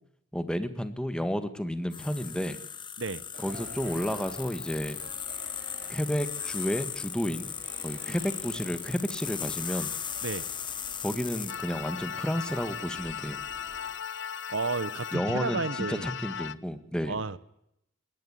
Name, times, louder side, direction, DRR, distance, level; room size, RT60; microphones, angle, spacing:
voice 1, 0.3-2.6 3.4-5.0 5.9-7.5 7.8-10.0 11.0-13.4 15.1-17.2, equal, 5° left, 11 dB, 1.6 m, -31 dB
sound 1, 1.9-15.1, left 8 dB, 25° left, 1.1 m, -39 dB
sound 2, 3.3-13.9, right 2 dB, 55° right, 5.8 m, -49 dB
sound 3, 11.5-16.5, left 8 dB, 60° left, 0.9 m, -37 dB
voice 2, 14.5-16.1 17.1-17.4, right 4 dB, 70° right, 18 dB, 0.9 m, -32 dB
21.0 x 18.5 x 10.0 m, 0.79 s
head